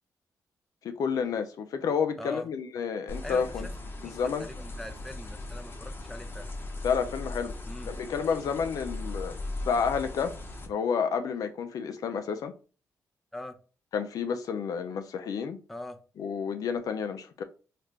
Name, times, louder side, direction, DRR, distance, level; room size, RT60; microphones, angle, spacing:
voice 1, 0.8-3.7 4.0-4.5 6.8-7.5 7.9-9.4 9.7-10.4 10.7-12.5 13.9-15.6 16.2-17.4, left 6 dB, 70° left, 0.4 m, -30 dB
voice 2, 2.2-2.5 3.2-6.5 7.7-7.9 13.3-13.6 15.7-16.0, left 1 dB, 5° left, 0.5 m, -42 dB
sound 1, 3.1-10.7, left 2 dB, 35° left, 0.9 m, -39 dB
3.2 x 2.5 x 3.0 m
cardioid pair, 70°, 6 cm